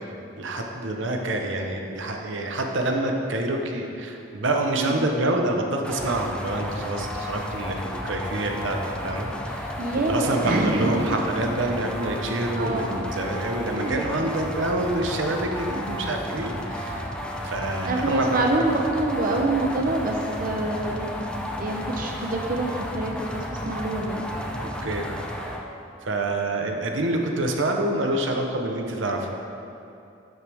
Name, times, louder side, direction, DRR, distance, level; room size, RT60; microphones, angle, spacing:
voice 1, 0.0-9.8 10.1-17.1 17.4-18.4 24.6-25.1 26.0-29.3, right 1 dB, 85° right, 2 dB, 0.9 m, -27 dB
voice 2, 4.8-5.1 9.8-11.1 12.5-13.0 13.8-14.1 17.9-24.3, right 2 dB, 50° right, 1 dB, 0.8 m, -26 dB
sound 1, 5.8-25.6, equal, 5° left, 0.6 m, -33 dB
11.5 x 7.9 x 3.5 m, 2.7 s
head